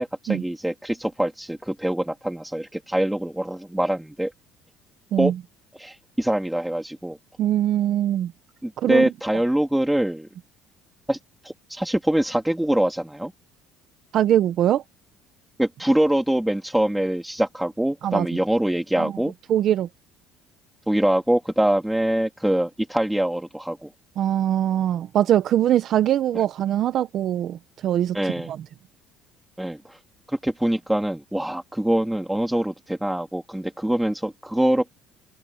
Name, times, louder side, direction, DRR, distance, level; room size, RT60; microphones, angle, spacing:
voice 1, 0.0-4.3 5.2-5.3 5.8-7.2 8.6-10.3 11.1-11.2 11.4-13.3 15.6-19.3 20.9-23.9 28.1-28.5 29.6-29.8 30.3-34.8, right 1 dB, 5° right, 2.9 m, -24 dB
voice 2, 7.4-8.3 8.8-9.1 14.1-14.8 18.0-18.3 18.9-19.1 19.5-19.9 24.2-28.6, right 11 dB, 45° right, 0.7 m, -22 dB
open air
cardioid pair, 160°, 0 cm